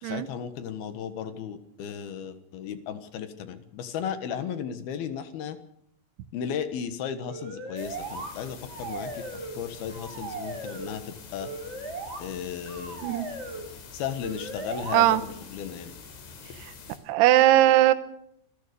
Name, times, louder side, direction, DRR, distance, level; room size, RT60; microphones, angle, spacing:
voice 1, 0.0-5.6 6.3-11.5 12.2-13.1 13.9-16.0, left 8 dB, 65° left, 10 dB, 2.9 m, -35 dB
sound 1, 7.3-8.3 8.7-9.6 9.9-10.9 11.4-12.2 12.7-13.7 14.2-15.0, right 3 dB, 30° right, 3.0 m, -37 dB
sound 2, 7.8-17.0, left 5 dB, 80° left, 5.8 m, -46 dB
voice 2, 17.1-17.9, right 14 dB, 75° right, 10 dB, 2.7 m, -19 dB
27.0 x 14.0 x 6.8 m, 0.73 s
omnidirectional pair, 5.4 m